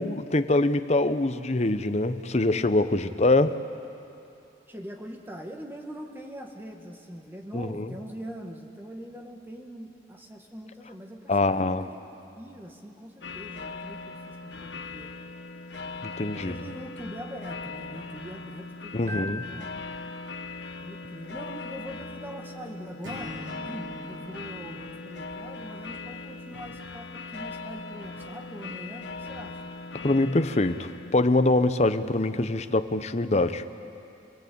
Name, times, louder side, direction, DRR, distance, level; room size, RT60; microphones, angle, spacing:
voice 1, 0.0-3.6 7.5-7.9 11.3-11.9 16.2-16.5 18.9-19.4 30.0-33.6, left 2 dB, 35° left, 10 dB, 0.8 m, -24 dB
voice 2, 4.7-12.0 12.3-14.4 14.6-15.1 15.8-19.7 20.8-23.4 23.6-29.6, equal, 10° right, 2 dB, 2.0 m, -42 dB
sound 1, 13.2-31.1, left 3 dB, 75° left, 1.0 m, -40 dB
Keyboard (musical), 19.1-20.9, left 1 dB, 45° right, 1.0 m, -40 dB
Acoustic guitar / Strum, 23.0-26.1, right 1 dB, 80° right, 3.4 m, -44 dB
28.0 x 20.0 x 8.7 m, 2.7 s
head